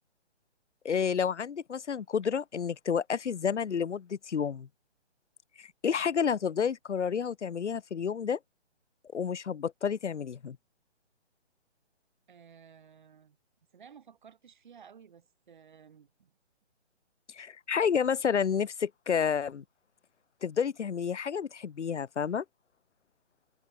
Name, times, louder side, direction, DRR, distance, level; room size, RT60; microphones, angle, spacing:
voice 1, 0.8-4.7 5.6-8.4 9.1-10.6 17.3-19.6 20.4-22.4, left 7 dB, 85° left, 1.0 m, -30 dB
voice 2, 12.3-13.4 13.7-16.3, right 7 dB, 45° right, 5.8 m, -55 dB
hypercardioid pair, 170°, 34 cm